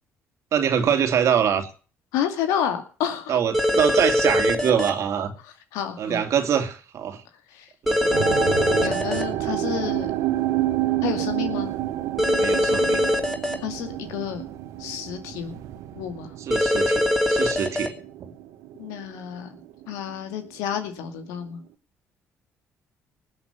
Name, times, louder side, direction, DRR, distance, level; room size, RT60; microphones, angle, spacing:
voice 1, 0.5-1.7 3.3-5.3 6.0-7.2 7.8-8.1 12.4-13.1 16.4-17.9, right 8 dB, 65° right, 8 dB, 2.5 m, -24 dB
voice 2, 2.1-3.4 5.4-6.2 7.5-7.7 8.8-10.1 11.0-11.7 13.6-14.4 14.8-15.6 15.9-16.3 18.8-19.5 19.9-21.6, left 9 dB, 90° left, 8 dB, 2.4 m, -30 dB
sound 1, 3.5-4.9 7.9-9.2 12.2-13.5 16.5-17.9, left 1 dB, ahead, 3.4 m, -22 dB
sound 2, 8.1-19.3 19.5-20.2 20.8-20.9, right 14 dB, 85° right, 1.4 m, -29 dB
19.5 x 8.1 x 6.8 m, 0.39 s
supercardioid pair, 80°, 5 cm